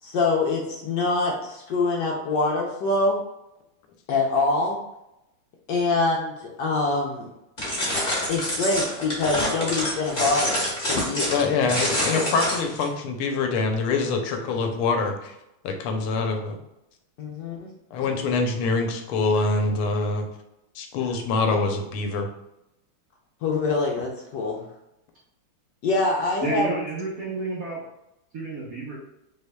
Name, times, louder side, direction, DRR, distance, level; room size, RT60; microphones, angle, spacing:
voice 1, 0.0-3.2 4.1-4.8 5.7-7.3 8.3-11.4 17.2-17.7 23.4-24.6 25.8-26.7 27.2-27.3, left 3 dB, 70° left, 0 dB, 1.1 m, -25 dB
sound 1, 7.6-12.9, equal, 25° left, 1.1 m, -27 dB
voice 2, 11.3-15.3 15.6-16.6 17.9-20.3 20.7-22.3, left 4 dB, 85° left, 4 dB, 1.5 m, -25 dB
voice 3, 26.4-27.8 28.3-29.0, right 3 dB, 60° right, -5 dB, 1.0 m, -30 dB
5.5 x 3.4 x 2.2 m, 0.88 s
omnidirectional pair, 2.4 m